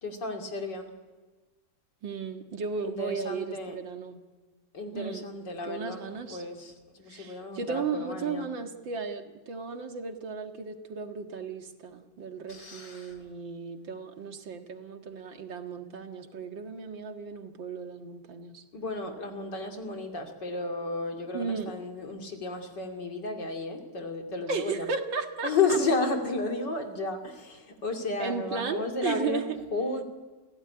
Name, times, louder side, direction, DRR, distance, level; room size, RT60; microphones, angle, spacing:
voice 1, 0.0-0.9 2.8-3.8 4.7-8.5 12.5-13.2 18.7-24.9 25.4-29.4 29.7-30.0, left 3 dB, 65° left, 3 dB, 3.3 m, -33 dB
voice 2, 2.0-4.2 4.9-5.2 5.6-6.4 7.1-18.6 21.3-21.7 24.5-25.8 28.2-29.6, right 5 dB, 75° right, 5 dB, 2.5 m, -35 dB
28.5 x 16.5 x 9.9 m, 1.3 s
omnidirectional pair, 2.1 m